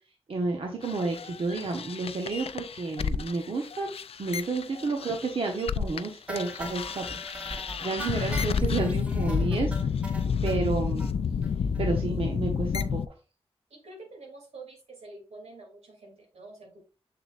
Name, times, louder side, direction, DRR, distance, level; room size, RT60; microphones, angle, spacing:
voice 1, 0.3-3.9 4.2-7.2 7.8-9.9 10.4-11.1 11.8-13.0, right 3 dB, 60° right, 2 dB, 1.0 m, -30 dB
sound 1, 0.8-6.1 6.3-13.1, left 6 dB, 70° left, 0.4 m, -30 dB
sound 2, 6.3-10.6 11.0-11.1 11.4-11.5 11.7-11.9 12.2-12.3, right 1 dB, 10° right, 1.0 m, -40 dB
voice 2, 13.7-16.8, right 2 dB, 85° right, 1 dB, 2.8 m, -47 dB
6.8 x 6.8 x 2.5 m, 0.33 s
wide cardioid pair, 140°, 10 cm